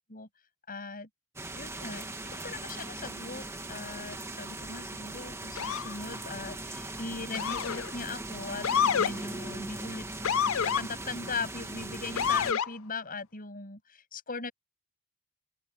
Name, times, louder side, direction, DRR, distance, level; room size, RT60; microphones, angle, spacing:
voice 1, 0.7-1.1 1.5-2.0 2.4-8.7 9.0-10.1 10.6-14.5, left 4 dB, 40° left, 8.0 m, -39 dB
sound 1, 1.4-12.5, right 2 dB, 10° right, 1.5 m, -40 dB
Motor vehicle (road) / Siren, 5.6-5.9 7.3-7.9 8.6-9.1 10.2-10.8 12.2-12.7, left 7 dB, 65° left, 0.6 m, -27 dB
open air
head